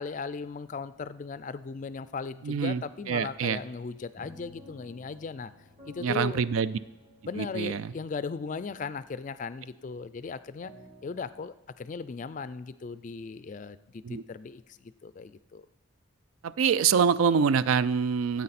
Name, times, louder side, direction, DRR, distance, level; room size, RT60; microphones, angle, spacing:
voice 1, 0.0-5.5 5.9-6.4 7.2-10.7 11.0-15.7, left 4 dB, 40° left, 15 dB, 0.3 m, -37 dB
voice 2, 2.4-3.6 6.0-6.8 7.4-7.9 14.0-14.2 16.4-18.4, right 6 dB, 90° right, 16 dB, 0.4 m, -25 dB
sound 1, 4.1-11.4, left 2 dB, 35° right, 3.0 m, -56 dB
13.5 x 8.4 x 4.2 m, 1.0 s
head